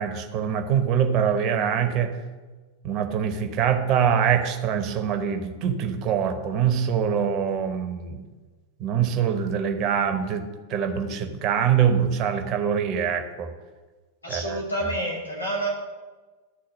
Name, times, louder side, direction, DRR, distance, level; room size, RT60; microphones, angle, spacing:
voice 1, 0.0-2.2 2.8-8.3 8.8-13.5 14.3-14.6, right 8 dB, 35° right, 6 dB, 1.1 m, -24 dB
voice 2, 14.2-15.7, right 1 dB, 80° left, -4 dB, 2.4 m, -28 dB
12.5 x 4.3 x 6.5 m, 1.3 s
figure-of-eight pair, 90°, 0 cm